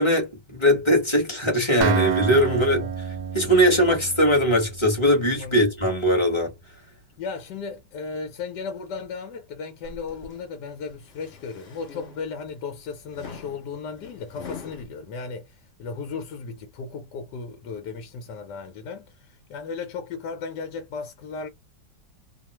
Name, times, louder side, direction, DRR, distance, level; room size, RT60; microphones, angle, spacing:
voice 1, 0.0-2.8 3.3-6.5, equal, 20° left, 1.1 m, -20 dB
Acoustic guitar, 1.8-5.7, right 8 dB, 70° right, 1.0 m, -29 dB
voice 2, 2.5-2.9 5.4-5.7 7.2-21.5, left 5 dB, 70° left, 1.4 m, -35 dB
sound 1, 9.8-10.4 10.9-12.5 13.1-14.8, left 5 dB, 50° left, 0.8 m, -43 dB
2.9 x 2.4 x 2.9 m
omnidirectional pair, 2.0 m